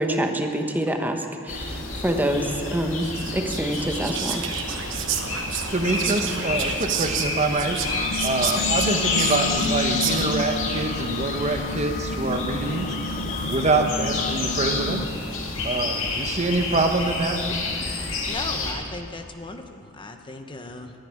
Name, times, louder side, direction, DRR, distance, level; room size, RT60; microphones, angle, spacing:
voice 1, 0.0-4.4, right 1 dB, 10° right, 4 dB, 1.1 m, -26 dB
sound 1, 1.5-18.7, left 3 dB, 70° left, 2.4 m, -29 dB
Whispering, 3.0-10.6, right 8 dB, 65° right, 1.1 m, -31 dB
voice 2, 5.7-7.8 8.2-12.9 13.5-15.0 15.6-17.4, right 2 dB, 35° right, 5 dB, 1.0 m, -25 dB
sound 2, 7.8-15.1, left 3 dB, 45° left, 0.5 m, -31 dB
voice 3, 18.3-20.9, left 2 dB, 25° left, 6 dB, 0.8 m, -37 dB
12.0 x 10.0 x 10.0 m, 2.4 s
head